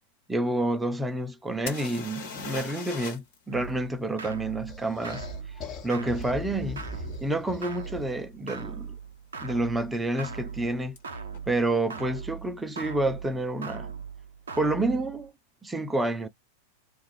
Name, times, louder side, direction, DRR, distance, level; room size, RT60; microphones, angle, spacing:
voice 1, 0.3-5.2 5.8-6.9 7.2-9.0 9.4-11.0 11.5-13.9 14.6-15.3 15.6-16.3, right 2 dB, 10° right, 0.5 m, -29 dB
sound 1, 1.7-3.4 3.6-3.7 7.1-7.2 7.9-8.1 8.3-8.9 11.0-11.1 11.3-11.4, left 6 dB, 55° left, 1.3 m, -39 dB
sound 2, 3.5-15.3, right 5 dB, 65° right, 0.6 m, -40 dB
sound 3, 4.7-8.2, left 4 dB, 35° left, 1.0 m, -41 dB
2.6 x 2.3 x 3.1 m
figure-of-eight pair, 90°, 0 cm